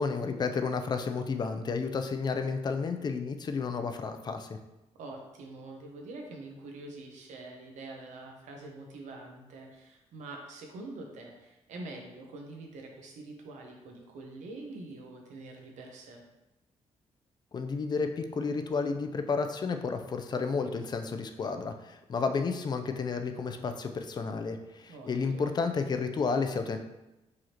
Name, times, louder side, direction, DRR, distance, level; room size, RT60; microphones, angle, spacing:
voice 1, 0.0-4.6 17.5-26.8, left 4 dB, 35° left, 7 dB, 0.4 m, -31 dB
voice 2, 5.0-16.2 24.9-25.5, right 2 dB, 85° right, 1 dB, 0.8 m, -45 dB
4.7 x 3.1 x 2.9 m, 0.98 s
cardioid pair, 115°, 12 cm